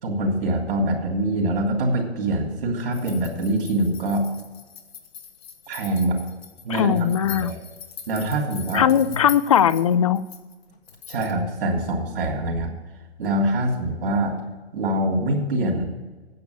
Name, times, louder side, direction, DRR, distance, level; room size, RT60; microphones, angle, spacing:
voice 1, 0.0-4.3 5.7-6.2 6.6-7.0 7.2-7.6 8.1-9.2 11.1-12.7 13.2-14.4 14.7-15.9, right 1 dB, 60° right, 0 dB, 2.8 m, -24 dB
sound 1, 2.9-11.4, left 7 dB, 70° left, 1.6 m, -42 dB
voice 2, 6.7-7.5 8.7-10.2, left 9 dB, 35° left, 17 dB, 0.4 m, -19 dB
9.4 x 7.0 x 8.4 m, 1.2 s
hypercardioid pair, 145°, 33 cm